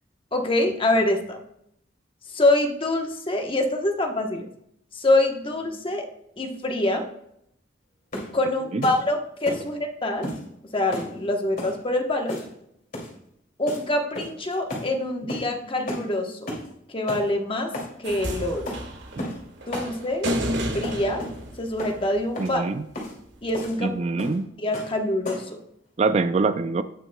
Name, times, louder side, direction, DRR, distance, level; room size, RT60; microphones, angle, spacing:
voice 1, 0.3-1.4 2.3-4.5 4.9-6.1 6.4-7.1 8.3-10.3 10.7-12.4 13.6-16.5 16.9-17.7 18.0-18.8 19.7-20.3 20.7-21.3 21.6-22.6 23.4-23.9 24.6-25.4, left 1 dB, 30° left, 3 dB, 1.0 m, -25 dB
sound 1, 8.1-8.4 8.8-9.0 9.4-9.7 10.2-10.4 10.9-11.1 11.6-11.8 12.3-12.6 12.9-13.1 13.7-13.8 14.1-14.4 14.7-14.9 15.3-15.5 15.9-16.1 16.5-16.7 17.1-17.2 17.7-17.9 18.7-18.8 19.2-19.4 19.7-19.9 20.2-20.5 20.8-21.4 21.8-22.0 22.3-22.5 22.9-23.1 23.5-23.8 24.2-24.4 24.7-24.9 25.2-25.5, left 1 dB, 50° left, 2.5 m, -33 dB
sound 2, 18.0-22.4 23.5-23.6, equal, 75° right, 1.6 m, -31 dB
voice 2, 22.4-22.8 23.8-24.4 26.0-26.8, right 3 dB, 35° right, 11 dB, 0.3 m, -24 dB
17.0 x 6.0 x 2.2 m, 0.76 s
head